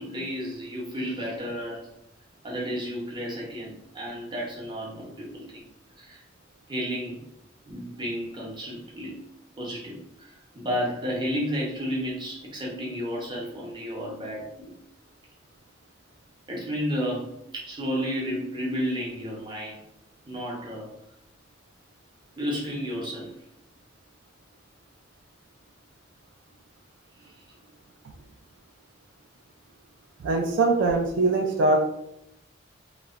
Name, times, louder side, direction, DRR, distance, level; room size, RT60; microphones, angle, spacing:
voice 1, 0.0-1.9 2.4-5.6 6.0-6.2 6.7-7.2 7.6-9.3 9.6-14.7 16.5-19.8 20.3-20.9 22.4-23.3 27.2-27.4, equal, 25° right, -3 dB, 0.6 m, -32 dB
voice 2, 30.2-31.8, right 3 dB, 75° right, 3 dB, 0.3 m, -22 dB
2.8 x 2.1 x 2.4 m, 0.80 s
head